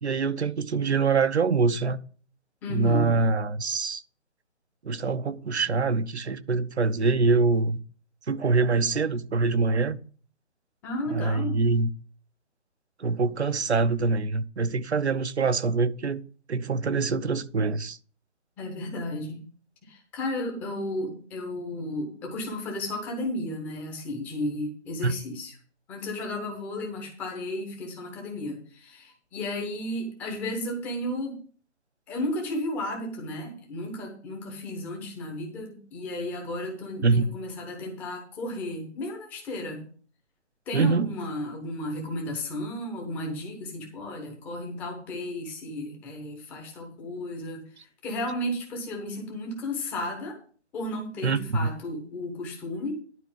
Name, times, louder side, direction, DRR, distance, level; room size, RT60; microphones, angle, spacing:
voice 1, 0.0-2.0 2.7-4.0 4.8-7.8 8.3-10.0 11.1-11.9 13.0-16.2 16.5-18.0 25.0-25.1 37.0-37.2 40.7-41.1 51.2-51.7, right 4 dB, 65° right, 1.0 m, -24 dB
voice 2, 2.6-3.2 10.8-11.6 18.6-19.4 19.9-25.5 25.9-31.4 32.1-39.9 40.7-50.4 50.7-53.0, left 1 dB, 5° left, 0.9 m, -33 dB
11.5 x 4.4 x 7.5 m
figure-of-eight pair, 155°, 36 cm